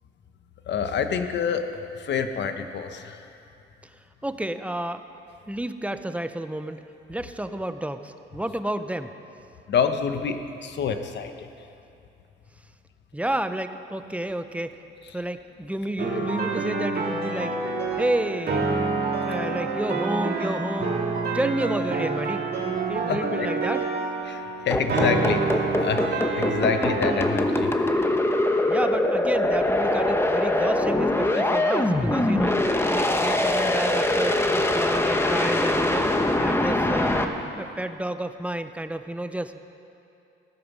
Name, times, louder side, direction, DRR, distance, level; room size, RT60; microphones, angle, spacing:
voice 1, 0.7-3.3 9.7-11.5 23.1-23.5 24.3-27.7, left 6 dB, 60° left, 8 dB, 1.0 m, -27 dB
voice 2, 4.2-5.0 5.5-6.8 7.1-9.1 13.1-14.8 15.1-17.6 18.0-18.7 19.2-20.9 21.3-22.4 22.9-23.8 28.7-39.6, right 1 dB, 5° right, 9 dB, 0.7 m, -30 dB
sound 1, 16.0-27.2, right 3 dB, 55° right, 2.5 m, -27 dB
sound 2, 24.7-37.2, left 1 dB, 10° left, 1.0 m, -23 dB
16.5 x 9.3 x 6.2 m, 2.7 s
cardioid pair, 90°, 20 cm